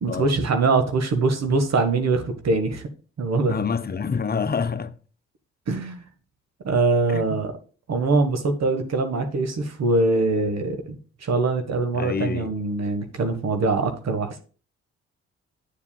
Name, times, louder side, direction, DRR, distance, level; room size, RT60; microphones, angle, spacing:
voice 1, 0.0-2.8 3.2-3.6 5.7-6.0 6.6-7.5 7.9-14.4, right 3 dB, 60° right, 1.4 m, -23 dB
voice 2, 3.5-4.9 7.1-7.2 11.9-12.5, left 6 dB, 30° left, 0.9 m, -27 dB
9.2 x 7.2 x 2.3 m
supercardioid pair, 50°, 30 cm